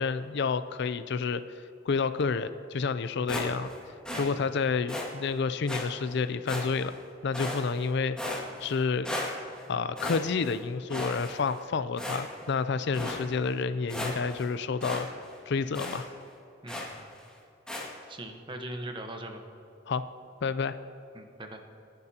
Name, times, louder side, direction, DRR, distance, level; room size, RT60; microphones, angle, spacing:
voice 1, 0.0-1.4 1.9-3.7 4.2-6.9 7.2-8.2 8.6-9.1 9.7-15.1 15.5-16.1 19.9-20.0 20.4-20.8, left 5 dB, 60° left, 12 dB, 0.4 m, -29 dB
sound 1, 3.3-3.8 4.0-4.3 4.9-5.1 5.7-5.8 6.5-6.9 7.3-7.9 8.2-8.8 9.0-9.6 10.0-10.6 10.9-11.6 12.0-12.5 12.9-13.2 13.6-13.7 13.9-14.5 14.8-15.0 15.3-15.4 15.7-16.0 16.7-17.0 17.7-17.9, left 1 dB, 5° left, 2.0 m, -35 dB
voice 2, 4.1-4.4 16.6-16.8 18.1-19.4 21.1-21.6, right 1 dB, 25° right, 4 dB, 1.1 m, -40 dB
29.0 x 11.0 x 2.9 m, 2.7 s
head